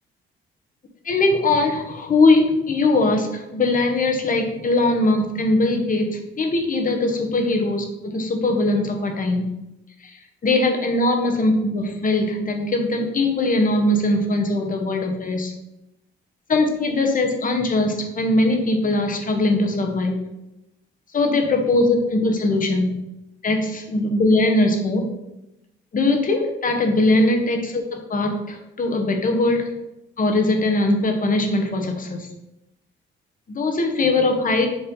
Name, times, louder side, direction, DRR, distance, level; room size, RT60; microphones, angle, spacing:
voice 1, 1.0-9.5 10.0-10.1 10.4-15.5 16.5-20.2 21.1-23.0 23.4-25.1 25.9-29.7 30.2-32.3 33.5-34.7, left 2 dB, 45° left, 4 dB, 1.4 m, -21 dB
7.3 x 3.3 x 5.4 m, 0.93 s
cardioid pair, 90°, 20 cm